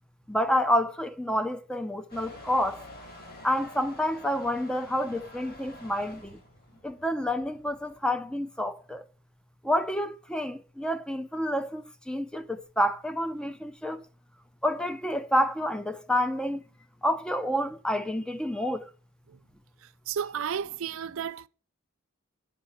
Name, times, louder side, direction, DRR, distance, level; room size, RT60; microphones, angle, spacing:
voice 1, 0.3-2.8 3.4-6.4 6.8-9.0 9.6-14.0 14.6-16.6 17.0-18.9, equal, 5° left, 0.6 m, -29 dB
Motor vehicle (road) / Engine starting / Accelerating revving vroom, 2.1-8.0, left 1 dB, 45° left, 3.9 m, -48 dB
voice 2, 20.1-21.5, right 8 dB, 70° right, 0.5 m, -32 dB
9.0 x 5.6 x 6.5 m
head